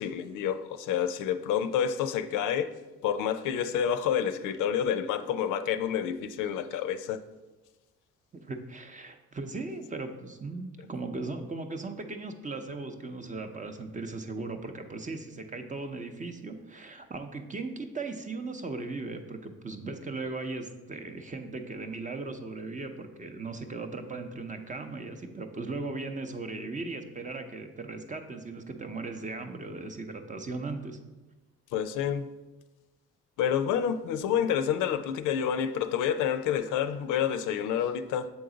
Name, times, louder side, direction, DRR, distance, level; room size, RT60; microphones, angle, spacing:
voice 1, 0.0-2.7 3.0-7.2 31.7-32.3 33.4-38.3, left 8 dB, 85° left, 10 dB, 0.5 m, -28 dB
voice 2, 8.3-31.0, right 3 dB, 25° right, 6 dB, 0.6 m, -38 dB
7.1 x 3.9 x 3.8 m, 1.1 s
cardioid pair, 90°, 30 cm